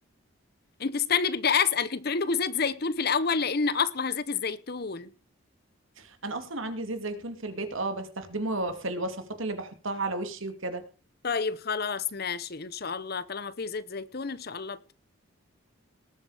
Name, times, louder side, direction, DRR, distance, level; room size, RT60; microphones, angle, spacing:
voice 1, 0.8-5.1 11.2-14.9, left 5 dB, 45° left, 0.8 m, -28 dB
voice 2, 6.0-10.8, right 2 dB, 65° right, 2.5 m, -33 dB
19.5 x 8.5 x 4.9 m
head